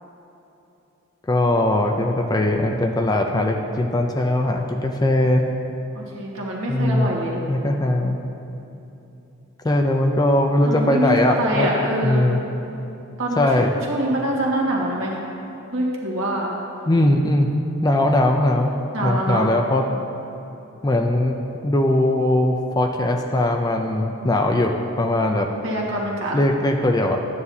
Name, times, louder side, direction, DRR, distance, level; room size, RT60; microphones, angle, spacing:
voice 1, 1.3-5.5 6.7-7.1 7.5-8.2 9.6-11.7 12.0-12.4 13.4-13.7 16.9-17.5 17.8-18.7 19.0-19.9 20.8-25.5 26.3-27.3, left 1 dB, 15° left, 3 dB, 0.4 m, -20 dB
voice 2, 5.9-7.4 10.6-12.3 13.2-13.4 13.9-15.2 15.7-16.5 18.9-19.5 25.6-26.4, right 1 dB, 60° right, -3 dB, 1.6 m, -24 dB
12.5 x 9.4 x 2.7 m, 2.9 s
head